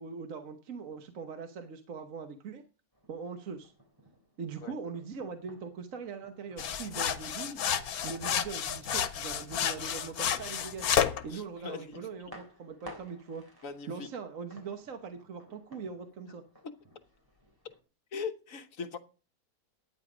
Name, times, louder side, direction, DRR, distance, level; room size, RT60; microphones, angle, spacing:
voice 1, 0.0-2.6 3.1-3.7 4.4-7.6 8.0-10.9 11.2-13.4 13.9-16.4, right 5 dB, 65° right, 1.4 m, -41 dB
sound 1, 2.9-17.8, equal, 15° right, 3.3 m, -56 dB
sound 2, 6.6-11.2, left 8 dB, 85° left, 1.4 m, -31 dB
voice 2, 11.3-12.0 13.6-14.1 18.1-19.0, left 6 dB, 65° left, 1.5 m, -40 dB
12.0 x 9.7 x 5.0 m
omnidirectional pair, 1.5 m